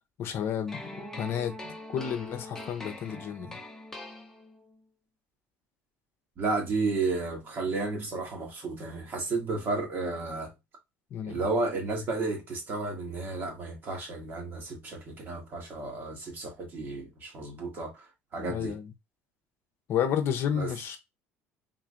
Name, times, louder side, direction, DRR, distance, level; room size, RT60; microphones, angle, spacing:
voice 1, 0.2-0.9 1.2-1.5 1.9-3.6 11.1-11.4 18.4-18.9 19.9-21.0, left 9 dB, 55° left, 0.7 m, -31 dB
sound 1, 0.7-4.8, left 1 dB, 10° left, 1.0 m, -43 dB
voice 2, 6.4-10.5 11.3-18.1 18.3-18.8 20.5-20.7, right 3 dB, 40° right, 1.8 m, -32 dB
3.8 x 3.1 x 2.5 m
supercardioid pair, 105°, 5 cm